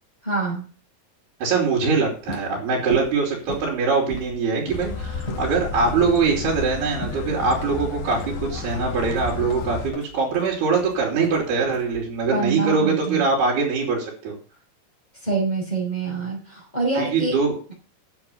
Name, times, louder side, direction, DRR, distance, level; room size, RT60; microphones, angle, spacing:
voice 1, 0.2-0.7 12.3-13.3 15.2-17.4, right 3 dB, 10° left, -2 dB, 5.2 m, -26 dB
voice 2, 1.4-14.4 17.0-17.5, right 4 dB, 70° right, -4 dB, 5.2 m, -23 dB
sound 1, 2.1-12.3, equal, 35° left, 3.6 m, -38 dB
sound 2, 4.7-9.9, left 4 dB, 65° left, 3.0 m, -32 dB
10.5 x 7.3 x 7.3 m, 0.38 s
omnidirectional pair, 4.7 m